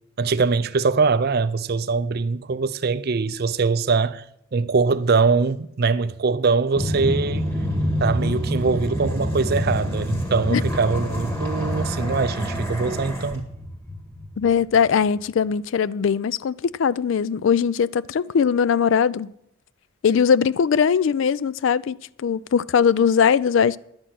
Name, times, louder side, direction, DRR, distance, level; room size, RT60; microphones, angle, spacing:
voice 1, 0.2-4.2 4.5-7.5 8.0-13.5, right 4 dB, 45° right, 0.5 m, -22 dB
sound 1, 6.7-14.9, equal, 10° left, 1.8 m, -27 dB
voice 2, 14.4-19.3 20.0-23.8, left 7 dB, 65° left, 0.3 m, -20 dB
11.0 x 8.2 x 5.9 m
head